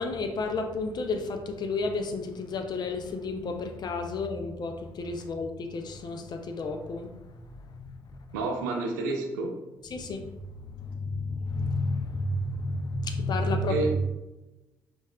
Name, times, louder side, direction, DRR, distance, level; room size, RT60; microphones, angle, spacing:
voice 1, 0.0-8.4 9.9-13.8, left 3 dB, 45° left, 5 dB, 0.5 m, -32 dB
voice 2, 8.3-9.6 13.7-14.0, right 3 dB, 75° right, 3 dB, 0.4 m, -29 dB
5.2 x 2.4 x 2.2 m, 1.0 s
figure-of-eight pair, 40°, 10 cm